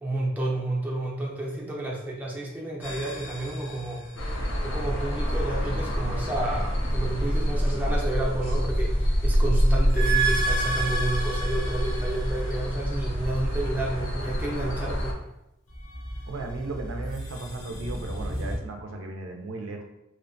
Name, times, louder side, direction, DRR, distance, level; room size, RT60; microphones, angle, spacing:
voice 1, 0.0-4.1 4.6-15.1, right 2 dB, 10° right, -4 dB, 0.4 m, -31 dB
sound 1, 2.8-4.8 8.7-13.2 15.7-18.5, right 3 dB, 90° left, 0.9 m, -33 dB
sound 2, 4.2-15.1, equal, 70° left, 0.5 m, -26 dB
voice 2, 16.3-19.8, right 3 dB, 90° right, 3 dB, 0.4 m, -36 dB
2.7 x 2.1 x 2.5 m, 0.88 s
head